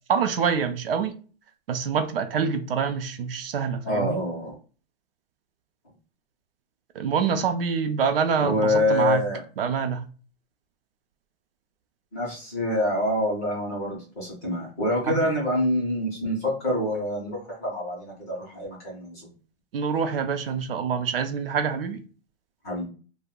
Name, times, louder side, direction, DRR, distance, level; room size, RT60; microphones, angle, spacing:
voice 1, 0.1-1.1 1.7-4.2 6.9-9.2 9.6-10.0 15.1-15.3 19.7-22.0, right 6 dB, 60° right, 0.5 m, -26 dB
voice 2, 3.8-4.6 8.4-9.4 12.1-19.3 22.6-22.8, left 1 dB, 15° left, 0.5 m, -26 dB
2.6 x 2.1 x 3.5 m
hypercardioid pair, 180°, 32 cm